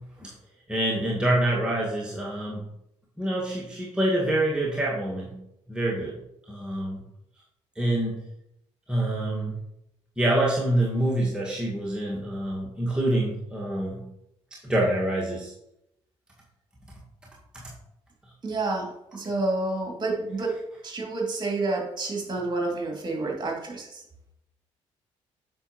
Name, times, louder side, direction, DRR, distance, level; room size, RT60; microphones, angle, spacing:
voice 1, 0.7-2.6 3.2-5.4 5.7-6.2 6.5-7.0 7.8-8.2 8.9-9.5 10.2-14.0 14.6-15.5, right 1 dB, 5° right, -4 dB, 1.7 m, -26 dB
voice 2, 18.4-20.6 20.8-24.0, right 2 dB, 30° right, -1 dB, 2.5 m, -29 dB
8.7 x 5.9 x 3.0 m, 0.82 s
figure-of-eight pair, 40°, 15 cm